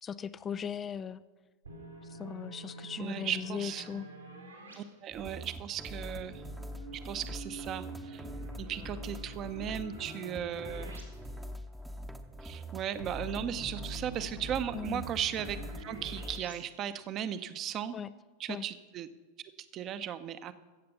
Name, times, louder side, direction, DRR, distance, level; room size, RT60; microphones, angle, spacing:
voice 1, 0.0-1.2 2.1-4.1 14.7-15.0 17.9-18.1 18.5-18.7, left 7 dB, 20° left, 14 dB, 0.3 m, -38 dB
sound 1, 1.6-4.8 6.1-11.0 11.3-11.4 13.0-16.5, right 2 dB, 85° right, 3.5 m, -47 dB
voice 2, 3.0-3.8 4.8-6.4 7.0-8.2 8.6-10.9 12.4-18.0 18.4-19.1 19.7-20.5, right 9 dB, 30° right, 12 dB, 0.8 m, -36 dB
sound 2, 5.1-16.4, equal, 5° right, 0.8 m, -43 dB
15.0 x 7.7 x 6.9 m, 1.3 s
figure-of-eight pair, 90°, 0 cm